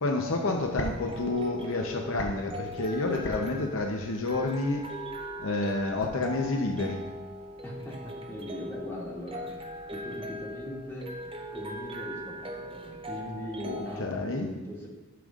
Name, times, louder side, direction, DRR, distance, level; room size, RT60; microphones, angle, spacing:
voice 1, 0.0-4.8 5.4-7.1 13.6-14.5, left 2 dB, 65° left, 2 dB, 0.8 m, -29 dB
sound 1, 0.5-14.1, equal, 25° right, 0.7 m, -40 dB
voice 2, 7.6-11.2 11.5-14.9, equal, 10° left, -5 dB, 2.2 m, -40 dB
12.5 x 6.9 x 2.5 m, 1.2 s
head